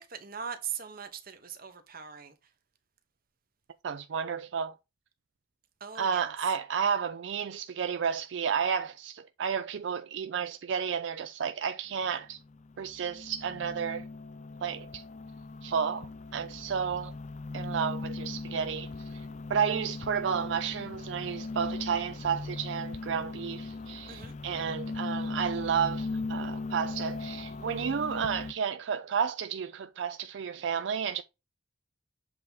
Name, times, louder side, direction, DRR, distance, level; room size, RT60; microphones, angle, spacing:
voice 1, 0.0-2.3 5.8-6.3 24.1-24.3, right 7 dB, 50° right, 1.1 m, -40 dB
voice 2, 3.8-4.7 5.9-12.4 12.8-14.1 14.6-15.0 15.6-17.1 17.5-31.2, right 7 dB, 75° right, 0.4 m, -32 dB
sound 1, 12.0-28.5, left 3 dB, 40° left, 0.4 m, -39 dB
7.7 x 3.5 x 4.0 m
head